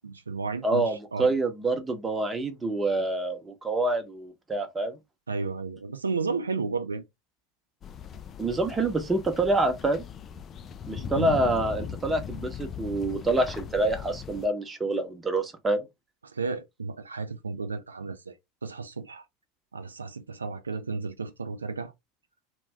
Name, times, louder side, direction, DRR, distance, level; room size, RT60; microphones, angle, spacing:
voice 1, 0.0-1.3 5.3-7.0 11.1-11.4 16.3-18.3 18.6-19.2 19.7-21.9, right 4 dB, 85° right, 0.4 m, -33 dB
voice 2, 0.6-5.0 8.4-10.0 10.9-15.8, right 2 dB, 20° right, 0.8 m, -27 dB
sound 1, 7.8-14.5, left 7 dB, 35° left, 0.3 m, -38 dB
2.5 x 2.2 x 3.3 m
figure-of-eight pair, 80°, 0 cm